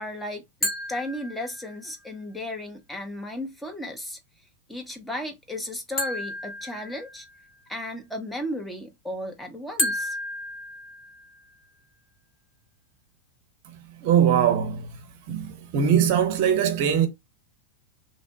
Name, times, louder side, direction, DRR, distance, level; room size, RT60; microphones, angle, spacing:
voice 1, 0.0-4.2 4.7-7.3 7.7-10.2, left 1 dB, 5° left, 0.6 m, -35 dB
sound 1, 0.6-1.9 6.0-7.5 9.8-11.5, left 1 dB, 30° left, 1.0 m, -32 dB
voice 2, 14.0-14.9 15.3-17.1, right 8 dB, 45° right, 0.6 m, -21 dB
2.8 x 2.1 x 2.7 m
figure-of-eight pair, 90°, 0 cm